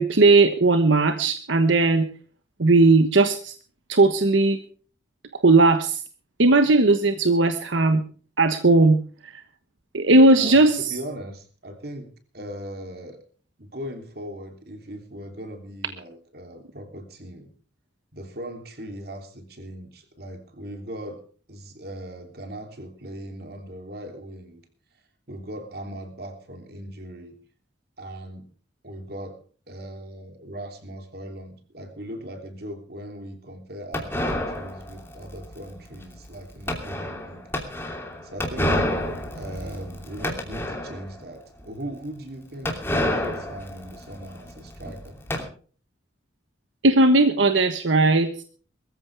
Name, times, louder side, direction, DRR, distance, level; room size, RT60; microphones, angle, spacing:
voice 1, 0.0-2.1 2.6-3.5 3.9-4.6 5.4-6.0 6.4-8.0 8.4-9.0 9.2-9.4 9.9-10.9 46.8-48.3, right 2 dB, 85° right, 8 dB, 1.2 m, -17 dB
voice 2, 10.4-13.2 13.6-17.5 18.1-21.2 21.5-24.6 25.3-27.3 28.0-28.5 28.8-29.4 29.7-37.5 38.2-38.8 39.3-45.2, right 1 dB, 55° right, 5 dB, 3.2 m, -39 dB
sound 1, 33.9-41.2 41.6-41.7 41.9-42.0 42.6-45.4, left 1 dB, 10° left, 2.9 m, -29 dB
21.5 x 14.5 x 3.4 m, 0.41 s
head